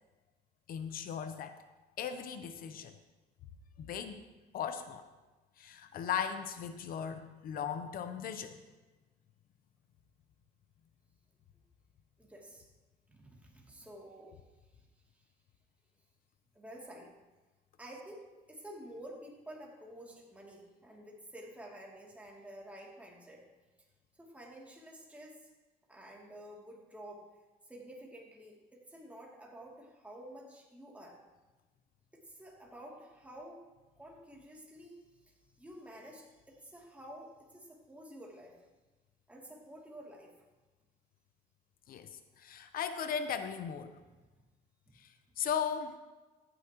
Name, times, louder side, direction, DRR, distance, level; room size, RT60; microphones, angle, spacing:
voice 1, 0.7-1.6 2.0-3.0 3.8-4.2 4.5-5.0 5.6-8.6 41.9-44.0 45.0-46.0, left 7 dB, 60° left, 9 dB, 0.8 m, -37 dB
voice 2, 12.2-12.7 13.1-14.4 14.8-14.9 16.5-17.1 17.8-23.4 24.1-25.5 25.9-27.3 27.7-31.2 32.1-33.7 34.0-35.1 35.6-38.6 39.3-40.3 44.0-44.2, right 1 dB, 10° right, -2 dB, 2.7 m, -50 dB
14.5 x 10.0 x 3.0 m, 1.2 s
cardioid pair, 110°, 17 cm